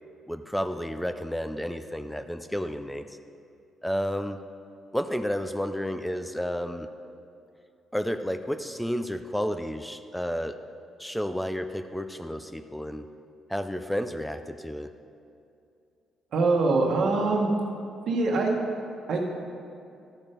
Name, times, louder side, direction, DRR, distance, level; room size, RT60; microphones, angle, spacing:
voice 1, 0.3-3.2 3.8-4.4 4.9-6.9 7.9-10.6 11.0-13.1 13.5-14.9, equal, 5° left, 9 dB, 0.4 m, -31 dB
voice 2, 16.3-17.5 18.1-18.5 19.1-19.4, right 3 dB, 70° right, 0 dB, 1.2 m, -23 dB
12.5 x 4.5 x 5.0 m, 2.5 s
cardioid pair, 90°, 0 cm